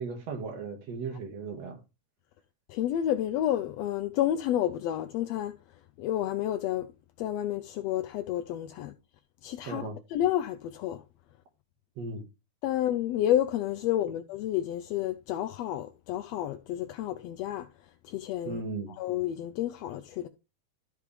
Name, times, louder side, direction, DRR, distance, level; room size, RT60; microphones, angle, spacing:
voice 1, 0.0-1.8 9.7-10.0 12.0-12.2 18.5-19.0, right 4 dB, 60° right, 2.7 m, -36 dB
voice 2, 2.7-5.6 6.0-6.9 7.2-8.9 9.4-11.0 12.6-17.7 18.0-18.6 19.0-20.3, left 12 dB, 75° left, 1.5 m, -30 dB
13.5 x 5.2 x 3.3 m
omnidirectional pair, 3.4 m